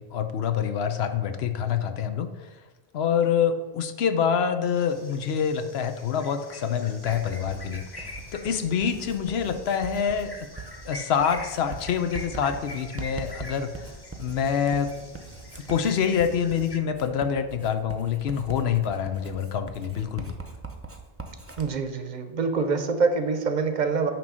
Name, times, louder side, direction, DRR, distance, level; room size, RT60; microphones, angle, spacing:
voice 1, 0.0-2.3 2.9-7.8 8.3-10.5 10.8-13.7 14.2-14.9 15.5-20.4, left 7 dB, 85° left, 9 dB, 0.9 m, -26 dB
sound 1, 4.8-16.8, left 2 dB, 25° left, 0.8 m, -45 dB
Writing, 7.0-21.7, right 4 dB, 15° right, 0.6 m, -42 dB
voice 2, 21.6-24.1, right 4 dB, 50° right, 7 dB, 0.8 m, -25 dB
9.2 x 3.1 x 6.1 m, 1.2 s
omnidirectional pair, 1.0 m